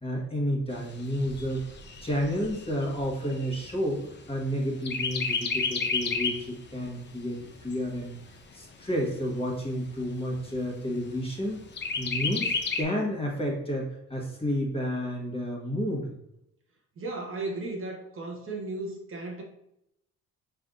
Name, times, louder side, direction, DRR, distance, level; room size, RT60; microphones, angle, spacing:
voice 1, 0.0-1.6 2.0-4.0 4.3-8.1 8.5-16.1, equal, 20° left, -2 dB, 1.4 m, -31 dB
Chirp tweet, 0.7-4.5 4.8-6.5 7.0-7.1 7.4-8.4 9.0-9.1 9.4-9.5 10.0-10.5 11.8-12.8, left 4 dB, 35° left, 0.6 m, -31 dB
voice 2, 17.0-19.4, right 2 dB, 45° right, -1 dB, 1.0 m, -35 dB
5.2 x 3.4 x 2.5 m, 0.80 s
cardioid pair, 90°, 30 cm